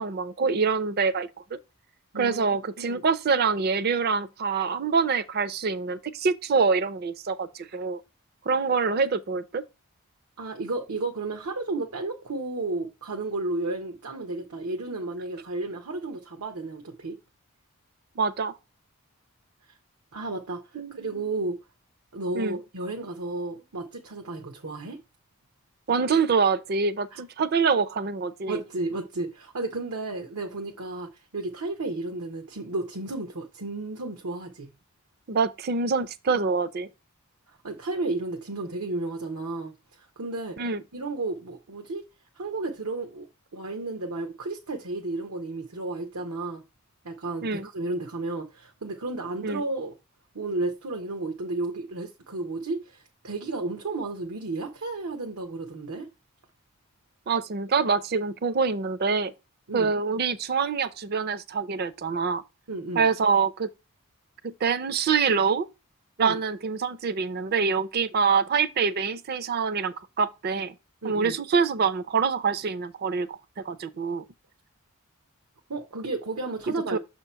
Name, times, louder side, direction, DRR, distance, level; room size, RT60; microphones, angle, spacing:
voice 1, 0.0-1.6 2.2-8.0 8.5-9.6 18.2-18.5 20.7-21.3 22.3-22.6 25.9-28.6 35.3-36.9 40.6-40.8 47.4-47.7 49.4-49.6 57.3-59.3 59.7-62.4 62.9-63.7 64.4-65.7 66.2-70.7 71.0-74.3 76.7-77.0, right 5 dB, 45° right, 0.5 m, -25 dB
voice 2, 2.1-3.0 10.4-17.2 20.1-21.6 22.1-25.0 27.1-27.2 28.5-34.7 37.6-39.7 40.0-40.6 40.9-42.0 42.4-46.6 47.0-50.0 50.3-56.1 59.7-59.9 62.7-63.1 66.2-66.4 71.0-71.4 75.7-77.0, right 2 dB, 90° right, 0.9 m, -33 dB
6.7 x 2.9 x 5.6 m
head